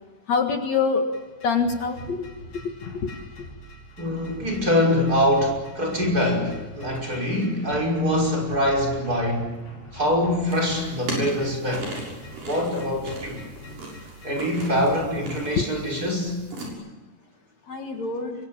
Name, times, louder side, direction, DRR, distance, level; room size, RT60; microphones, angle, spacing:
voice 1, 0.3-1.1 1.4-2.2 15.6-15.7 17.7-18.3, left 5 dB, 55° left, 4 dB, 2.9 m, -24 dB
sound 1, 1.1-15.4, equal, 35° left, 6.1 m, -43 dB
voice 2, 4.0-9.5 9.9-11.9 12.5-13.4 14.2-16.4, left 1 dB, 25° right, 1 dB, 5.9 m, -24 dB
sound 2, 10.5-16.7, right 1 dB, 85° right, 8.6 m, -37 dB
26.5 x 24.0 x 8.8 m, 1.2 s
omnidirectional pair, 3.8 m